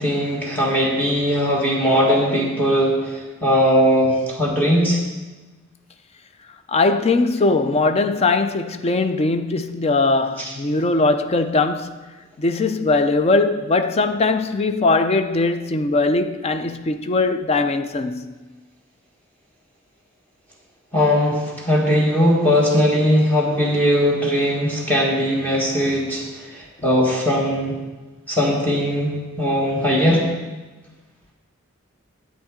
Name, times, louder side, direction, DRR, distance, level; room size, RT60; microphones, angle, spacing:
voice 1, 0.0-5.0 20.9-27.8 28.3-30.2, equal, 10° left, 1.5 m, -19 dB
voice 2, 6.7-12.1 12.4-18.4, left 3 dB, 30° left, 0.4 m, -20 dB
9.9 x 8.1 x 3.7 m
head